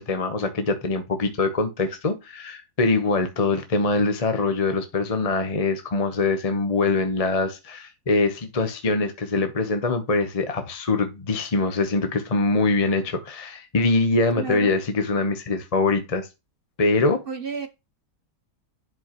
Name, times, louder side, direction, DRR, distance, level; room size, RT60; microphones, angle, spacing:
voice 1, 0.0-16.3 16.8-17.2, left 3 dB, 30° left, 0.7 m, -23 dB
voice 2, 14.3-14.9 17.3-17.7, right 6 dB, 45° right, 0.8 m, -32 dB
11.0 x 5.2 x 2.9 m
omnidirectional pair, 1.9 m